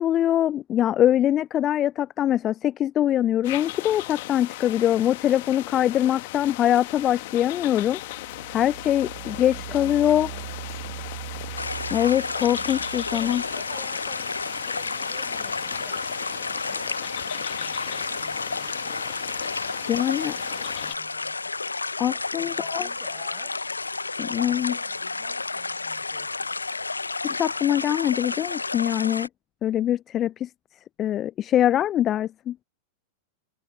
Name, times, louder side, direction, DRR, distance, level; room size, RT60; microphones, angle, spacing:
voice 1, 0.0-8.0 8.5-10.3 11.9-13.4 19.9-20.3 22.0-22.9 24.2-24.8 27.2-29.3 29.6-30.5 31.0-32.6, left 11 dB, 30° left, 0.5 m, -23 dB
sound 1, 3.4-20.9, left 19 dB, 50° left, 2.2 m, -37 dB
Engine, 7.0-7.1 7.7-13.6, right 15 dB, 55° right, 2.1 m, -40 dB
voice 2, 9.1-11.5 12.3-19.4 19.8-21.5 22.3-23.7 24.0-26.6, left 2 dB, 5° left, 7.9 m, -52 dB
sound 2, 11.6-29.3, left 3 dB, 80° left, 1.3 m, -31 dB
figure-of-eight pair, 90°, 0 cm